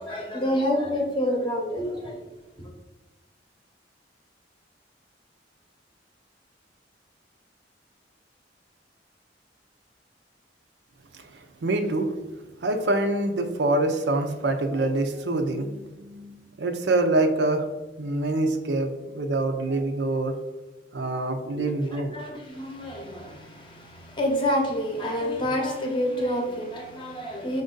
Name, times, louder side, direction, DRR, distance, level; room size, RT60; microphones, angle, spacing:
voice 1, 0.0-2.3 2.6-2.7 21.5-27.6, equal, 25° left, 1 dB, 0.7 m, -28 dB
voice 2, 11.6-12.1 12.6-17.7 18.0-20.3 20.9-22.2, right 2 dB, 65° right, 6 dB, 0.5 m, -25 dB
5.3 x 2.6 x 3.7 m, 1.1 s
head